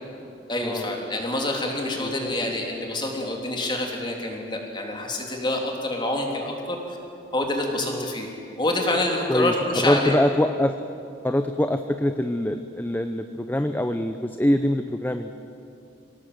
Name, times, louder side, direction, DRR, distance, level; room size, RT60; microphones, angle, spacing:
voice 1, 0.5-7.0 7.3-8.3 8.6-10.1, left 1 dB, 25° left, 1 dB, 3.3 m, -27 dB
voice 2, 2.0-2.3 7.8-8.1 9.3-10.7 11.2-15.3, left 1 dB, 10° left, 8 dB, 0.6 m, -24 dB
24.5 x 18.0 x 8.0 m, 2.7 s
head